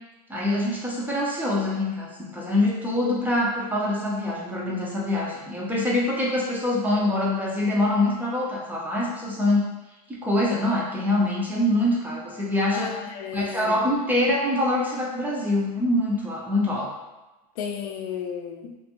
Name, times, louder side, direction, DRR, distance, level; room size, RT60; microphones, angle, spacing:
voice 1, 0.3-9.7 10.1-12.9 13.3-16.9, left 1 dB, 10° right, -4 dB, 0.4 m, -24 dB
voice 2, 12.7-13.8 17.6-18.8, left 8 dB, 60° left, 4 dB, 0.4 m, -33 dB
2.5 x 2.2 x 2.8 m, 1.1 s
supercardioid pair, 140°, 21 cm